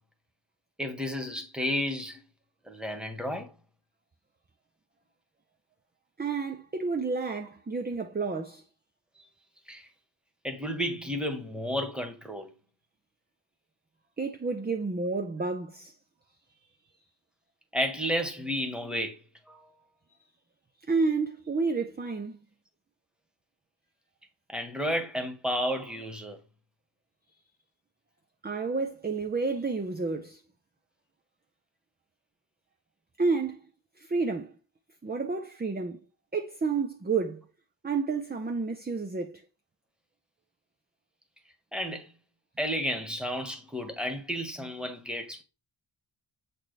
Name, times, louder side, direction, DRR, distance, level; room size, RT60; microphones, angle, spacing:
voice 1, 0.8-2.2 2.7-3.5 9.7-9.9 10.4-12.5 17.7-19.2 19.5-19.7 24.5-26.4 41.7-42.1 42.6-45.4, equal, ahead, 1.3 m, -32 dB
voice 2, 6.2-8.6 14.2-15.9 20.9-22.4 28.4-30.4 33.2-33.6 34.0-34.5 35.0-36.0 36.3-37.4 37.8-39.4, right 4 dB, 20° right, 0.5 m, -30 dB
7.4 x 4.2 x 3.3 m
wide cardioid pair, 85°, 49 cm